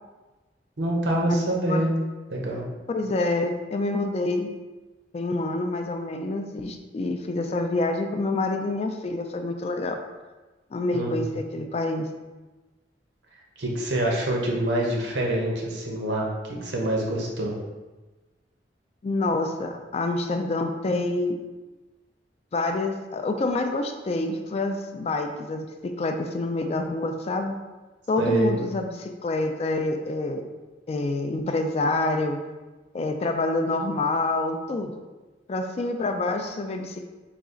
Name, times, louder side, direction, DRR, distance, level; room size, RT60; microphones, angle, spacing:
voice 1, 0.8-2.0 2.3-2.7 10.9-11.4 13.6-17.5 28.2-28.6, right 1 dB, 85° right, -1 dB, 0.8 m, -26 dB
voice 2, 2.9-4.6 5.1-10.0 10.7-12.1 19.0-21.4 22.5-27.6 28.1-30.4 30.9-32.4 32.9-35.0 35.5-37.0, left 2 dB, 35° left, 5 dB, 0.3 m, -27 dB
4.0 x 2.4 x 3.7 m, 1.2 s
head